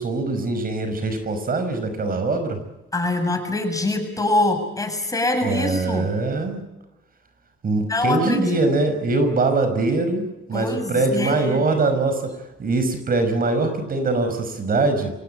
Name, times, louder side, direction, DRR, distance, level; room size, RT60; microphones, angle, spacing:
voice 1, 0.0-2.6 5.4-6.6 7.6-10.2 10.5-12.2 12.6-15.1, right 3 dB, 45° right, 8 dB, 5.6 m, -22 dB
voice 2, 2.9-6.1 7.9-8.6 10.5-11.6, left 2 dB, 15° left, 5 dB, 7.6 m, -24 dB
26.0 x 18.0 x 9.0 m, 1.0 s
cardioid pair, 90°, 20 cm